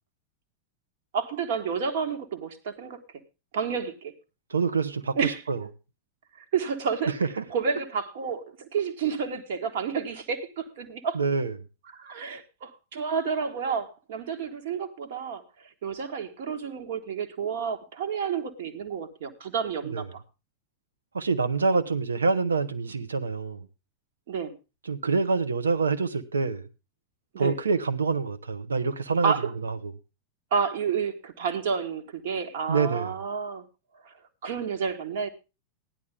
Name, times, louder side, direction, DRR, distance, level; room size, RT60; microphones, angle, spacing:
voice 1, 1.1-3.0 3.5-4.1 5.1-5.7 6.5-7.1 7.5-11.2 11.9-15.4 15.8-20.2 24.3-24.5 27.3-27.5 29.2-29.5 30.5-33.6 34.0-34.1 34.4-35.3, right 6 dB, 55° right, 1.7 m, -30 dB
voice 2, 4.5-5.6 7.4-7.5 11.1-11.5 19.9-20.0 21.1-23.7 24.9-26.7 27.4-29.3 29.6-29.9 32.7-33.1, right 4 dB, 75° right, 1.0 m, -26 dB
15.5 x 11.0 x 3.6 m
figure-of-eight pair, 90°, 0 cm